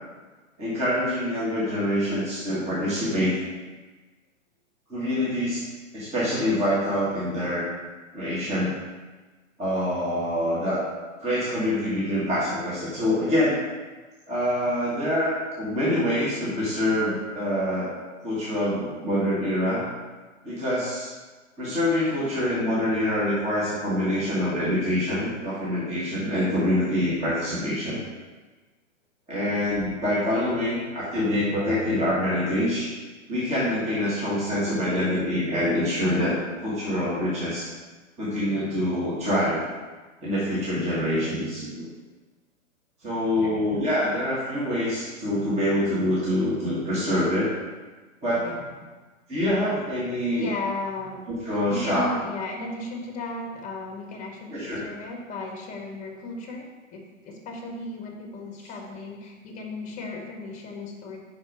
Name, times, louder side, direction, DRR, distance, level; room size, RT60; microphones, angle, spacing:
voice 1, 0.6-3.4 4.9-5.7 5.9-7.7 8.1-8.7 9.6-10.8 11.2-13.6 14.3-17.9 18.2-19.8 20.4-21.1 21.6-28.0 29.3-32.9 33.3-37.7 38.2-39.6 40.2-41.9 43.0-47.5 48.2-48.4 49.3-50.5 51.3-52.1 54.5-54.8, left 1 dB, 15° right, -8 dB, 1.5 m, -25 dB
voice 2, 48.4-48.9 50.3-51.3 51.7-61.2, left 2 dB, 20° left, 1 dB, 1.1 m, -35 dB
5.3 x 4.4 x 4.7 m, 1.3 s
hypercardioid pair, 130°, 40 cm